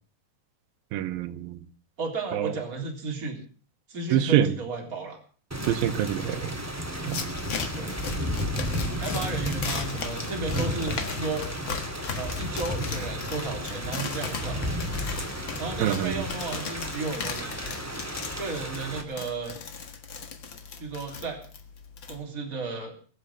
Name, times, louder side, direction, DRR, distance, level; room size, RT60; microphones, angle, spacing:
voice 1, 0.9-1.6 2.3-2.5 4.1-4.5 5.7-6.4 7.1-7.2 15.8-16.1, right 11 dB, 85° right, 2.8 m, -25 dB
voice 2, 2.0-3.4 3.9-5.2 6.2-6.5 7.7-8.0 9.0-11.4 12.1-14.6 15.6-17.5 18.4-19.6 20.8-21.5 22.1-22.9, right 3 dB, 25° right, 3.8 m, -34 dB
Thunder / Rain, 5.5-19.0, equal, 5° right, 1.3 m, -33 dB
sound 1, 7.0-22.2, left 6 dB, 45° left, 1.7 m, -37 dB
21.5 x 7.9 x 7.3 m
omnidirectional pair, 4.1 m